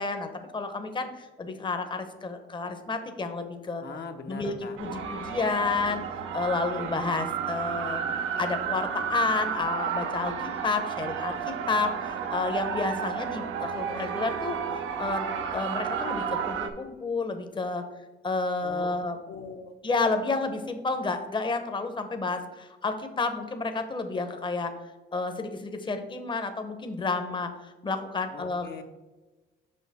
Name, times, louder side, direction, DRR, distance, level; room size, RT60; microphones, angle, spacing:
voice 1, 0.0-3.8 4.3-6.0 6.3-8.0 8.4-10.3 10.6-14.6 15.0-15.2 15.5-17.8 18.2-19.2 19.8-24.7 25.1-28.7, left 3 dB, 25° left, 7 dB, 0.8 m, -30 dB
voice 2, 3.8-4.8 18.6-18.9 19.3-19.7 28.3-28.8, left 5 dB, 55° left, 5 dB, 0.8 m, -41 dB
sound 1, 4.8-16.7, right 7 dB, 85° right, 0.7 m, -32 dB
6.5 x 5.4 x 4.1 m, 1.2 s
cardioid pair, 90°, 20 cm